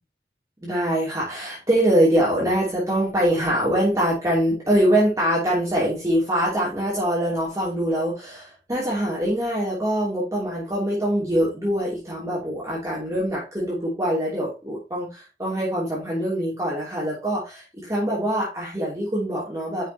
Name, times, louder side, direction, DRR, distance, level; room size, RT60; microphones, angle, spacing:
voice 1, 0.6-19.9, right 1 dB, 20° right, -6 dB, 2.8 m, -24 dB
9.4 x 5.9 x 2.8 m, 0.30 s
head